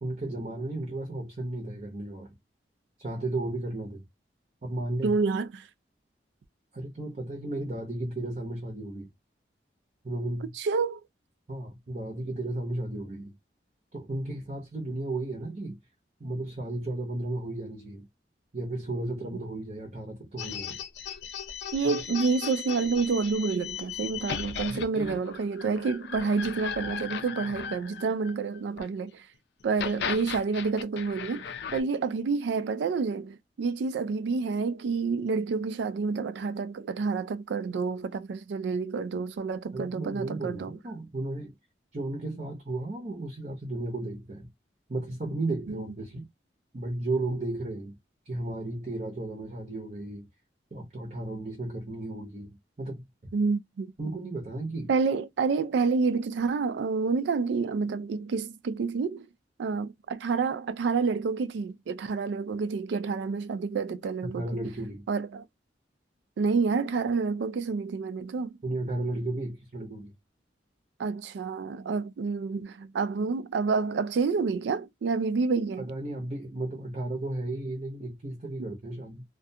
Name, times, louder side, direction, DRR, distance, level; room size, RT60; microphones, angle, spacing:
voice 1, 0.0-2.3 3.0-4.0 4.6-5.2 6.7-9.1 10.0-10.5 11.5-13.3 13.9-15.8 16.2-18.1 18.5-20.8 24.6-25.2 39.7-41.5 41.9-44.5 44.9-46.2 46.7-47.9 48.3-50.3 50.7-53.0 54.0-54.9 64.3-65.0 68.6-70.1 75.8-79.2, right 2 dB, 40° right, 0.7 m, -34 dB
voice 2, 5.0-5.7 10.6-11.0 21.7-29.3 29.6-40.8 45.7-45.8 53.3-53.9 54.9-59.3 59.6-64.4 65.1-65.5 66.4-68.6 71.0-75.9, right 4 dB, 80° right, 0.3 m, -28 dB
sound 1, 20.4-28.9 29.6-31.8, left 7 dB, 70° left, 0.4 m, -37 dB
2.3 x 2.2 x 2.6 m
head